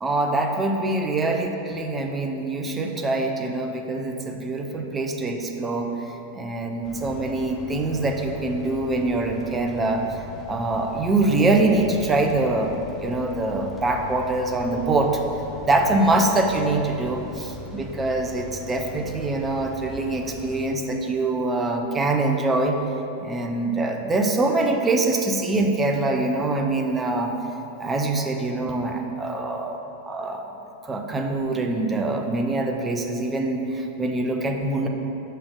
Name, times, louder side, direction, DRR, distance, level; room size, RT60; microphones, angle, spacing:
voice 1, 0.0-5.9 6.3-12.7 13.0-15.2 15.6-22.8 23.2-27.3 27.8-29.8 30.1-30.4 30.8-34.9, right 2 dB, 15° right, 3 dB, 0.7 m, -24 dB
sound 1, 6.8-20.7, left 3 dB, 15° left, 0.9 m, -40 dB
6.7 x 5.1 x 5.2 m, 3.0 s
figure-of-eight pair, 90°, 0 cm